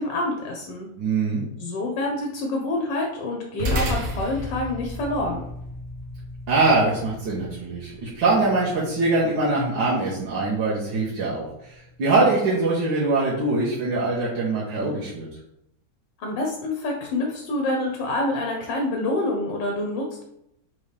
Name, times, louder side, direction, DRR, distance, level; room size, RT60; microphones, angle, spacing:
voice 1, 0.0-0.9 1.6-5.4 16.2-20.2, left 2 dB, 80° left, 1 dB, 1.4 m, -27 dB
voice 2, 1.0-1.4 6.5-11.5 12.0-15.3, right 3 dB, 90° right, -7 dB, 1.7 m, -23 dB
sound 1, 3.6-12.3, equal, 60° right, 1.4 m, -34 dB
4.2 x 3.7 x 3.3 m, 0.79 s
omnidirectional pair, 2.0 m